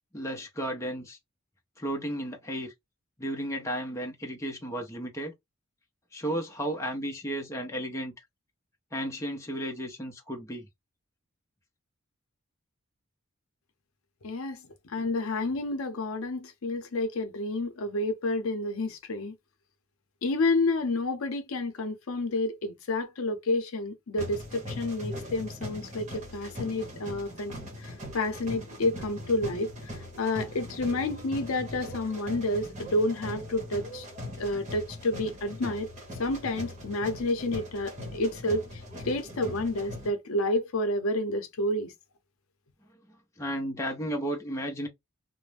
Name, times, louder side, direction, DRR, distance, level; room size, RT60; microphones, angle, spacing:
voice 1, 0.1-1.2 1.8-2.7 3.2-5.3 6.1-8.1 8.9-10.7 43.1-44.9, equal, 15° left, 0.7 m, -33 dB
voice 2, 14.2-14.6 14.9-19.3 20.2-27.5 27.8-34.1 34.4-35.9 36.2-41.9, left 2 dB, 75° left, 0.6 m, -30 dB
sound 1, 24.2-40.1, left 1 dB, 35° right, 1.1 m, -40 dB
2.5 x 2.1 x 3.2 m
head